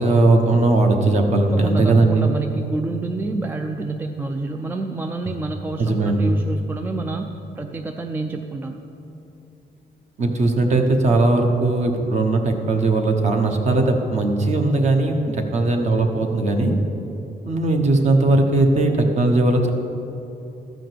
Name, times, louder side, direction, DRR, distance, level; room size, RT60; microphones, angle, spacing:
voice 1, 0.0-2.3 5.8-6.4 10.2-16.7 17.5-19.7, right 2 dB, 45° right, 4 dB, 1.0 m, -18 dB
voice 2, 1.5-7.3 7.6-8.8, right 3 dB, 10° right, 5 dB, 0.3 m, -28 dB
13.0 x 5.0 x 7.8 m, 2.9 s
cardioid pair, 175°, 17 cm